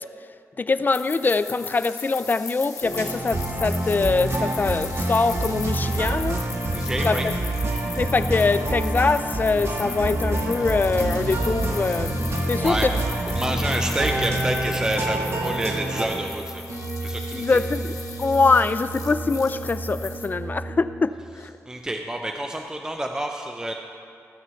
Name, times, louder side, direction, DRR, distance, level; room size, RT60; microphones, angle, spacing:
voice 1, 0.6-6.4 7.0-7.2 8.0-12.1 12.5-12.9 17.3-21.5, left 4 dB, 35° left, 13 dB, 0.4 m, -23 dB
sound 1, 0.9-20.3, left 5 dB, 85° left, 1.3 m, -39 dB
sound 2, 2.8-16.1, right 1 dB, 50° right, 1.6 m, -27 dB
voice 2, 6.7-7.3 12.5-13.0 13.3-16.7 17.0-17.6 21.7-23.7, right 1 dB, 10° right, 3 dB, 0.6 m, -28 dB
sound 3, 9.8-21.0, right 3 dB, 70° right, 3.7 m, -35 dB
15.5 x 6.6 x 6.9 m, 2.4 s
wide cardioid pair, 120°, 6 cm